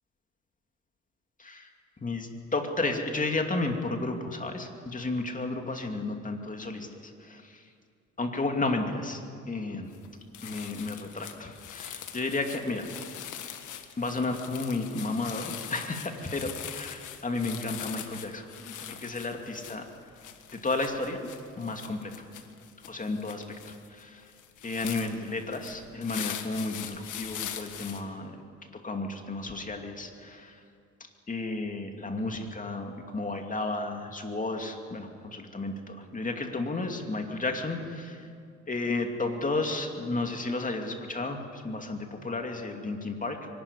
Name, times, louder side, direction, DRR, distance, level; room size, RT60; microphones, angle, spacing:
voice 1, 1.4-1.7 2.0-7.6 8.2-9.9 10.4-12.9 14.0-19.9 20.5-21.3 21.6-22.3 22.9-24.3 24.6-28.4 28.7-30.6 31.0-38.3 38.7-43.5, left 2 dB, 25° left, 4 dB, 2.6 m, -33 dB
sound 1, 9.9-10.1 10.3-28.0, left 10 dB, 80° left, 1.6 m, -42 dB
24.0 x 12.0 x 10.0 m, 2.3 s
cardioid pair, 90°, 30 cm